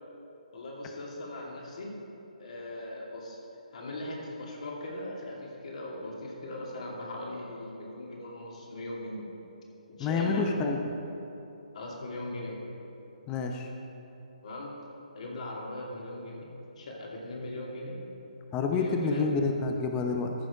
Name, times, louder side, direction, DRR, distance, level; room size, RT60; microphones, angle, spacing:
voice 1, 0.5-2.0 2.4-3.4 3.7-9.3 9.9-10.5 11.7-12.6 14.4-14.8 15.1-16.5 16.8-18.0 18.7-19.3, left 1 dB, 55° left, -2 dB, 2.4 m, -39 dB
voice 2, 10.0-10.8 13.3-13.7 18.5-20.3, left 4 dB, 20° left, 3 dB, 0.7 m, -28 dB
14.0 x 6.2 x 4.8 m, 2.8 s
figure-of-eight pair, 145°, 4 cm